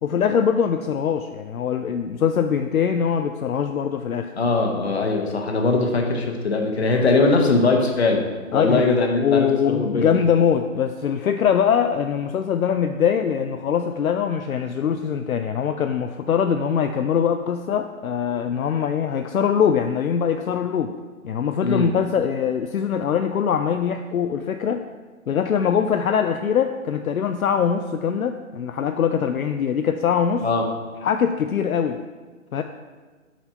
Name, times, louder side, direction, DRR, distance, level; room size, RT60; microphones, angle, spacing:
voice 1, 0.0-4.3 8.5-8.8 9.2-21.0 21.2-24.8 25.3-30.5 31.0-32.0 32.5-32.6, left 7 dB, 75° left, 7 dB, 0.5 m, -22 dB
voice 2, 4.4-8.2 8.5-10.1 21.6-21.9 30.4-30.7, left 3 dB, 50° left, 2 dB, 1.2 m, -21 dB
6.0 x 4.2 x 5.5 m, 1.4 s
figure-of-eight pair, 150°, 42 cm